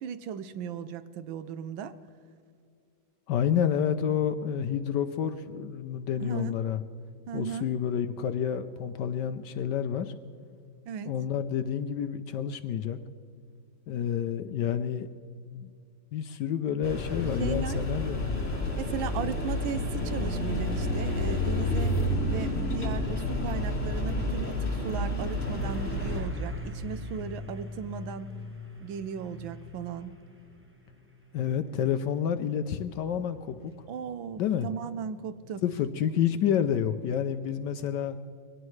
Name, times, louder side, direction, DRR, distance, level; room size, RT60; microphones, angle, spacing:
voice 1, 0.0-1.9 6.2-6.5 7.3-7.7 10.9-11.1 17.4-17.8 18.7-22.0 22.3-28.3 28.8-30.2 33.9-35.6, right 7 dB, 75° right, 13 dB, 1.4 m, -36 dB
voice 2, 3.3-6.8 7.3-10.1 11.1-13.0 13.9-15.1 15.5-15.7 16.1-18.3 31.3-33.9 34.4-34.7 35.6-38.2, left 8 dB, 70° left, 10 dB, 1.1 m, -29 dB
sound 1, 16.8-26.2, left 1 dB, 35° left, 3.2 m, -30 dB
Truck, 23.2-35.9, left 2 dB, 10° right, 0.7 m, -45 dB
22.0 x 17.5 x 3.2 m, 2.3 s
omnidirectional pair, 2.2 m